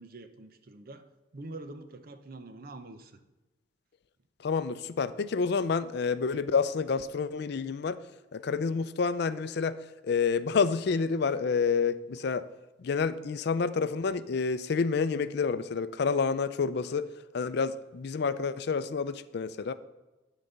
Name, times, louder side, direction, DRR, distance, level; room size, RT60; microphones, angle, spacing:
voice 1, 0.0-3.2, right 2 dB, 55° right, 0.7 m, -45 dB
voice 2, 4.4-8.0 8.3-9.8 10.0-12.5 12.8-17.1 17.3-19.7, left 5 dB, 65° left, 0.4 m, -29 dB
11.5 x 4.1 x 6.7 m
head